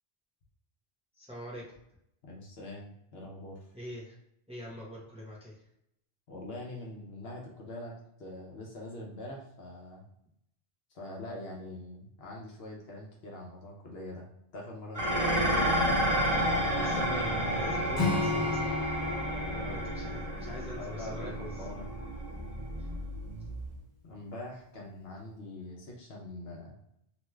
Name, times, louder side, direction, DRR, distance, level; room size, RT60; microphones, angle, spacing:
voice 1, 1.2-1.7 3.7-4.1 4.5-5.6 16.8-18.7 19.5-21.6 22.8-22.9, equal, 5° right, -5 dB, 0.9 m, -44 dB
voice 2, 2.2-3.6 6.3-7.9 8.2-10.0 10.9-14.2 14.5-15.6 19.3-19.8 20.7-21.8 24.0-26.7, left 1 dB, 65° left, -1 dB, 0.9 m, -43 dB
Dishes pots and pans, 14.9-23.8, equal, 35° right, 0.9 m, -31 dB
Acoustic guitar / Strum, 18.0-21.4, left 3 dB, 50° left, 1.2 m, -34 dB
3.0 x 2.2 x 3.1 m, 0.77 s
omnidirectional pair, 1.1 m